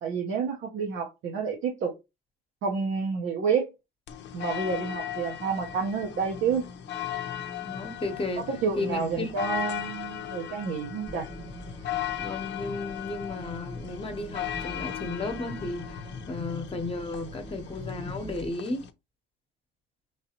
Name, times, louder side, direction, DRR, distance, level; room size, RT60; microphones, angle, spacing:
voice 1, 0.0-1.9 2.6-3.7 4.3-6.7 8.5-11.3, right 5 dB, 80° right, 1.0 m, -29 dB
sound 1, 4.1-18.9, left 10 dB, 65° left, 0.6 m, -37 dB
voice 2, 7.6-8.5 8.8-9.3 12.2-18.9, left 2 dB, 30° left, 0.9 m, -34 dB
sound 2, 11.1-18.5, right 1 dB, 25° right, 0.9 m, -44 dB
4.0 x 3.3 x 2.9 m
cardioid pair, 90°, 20 cm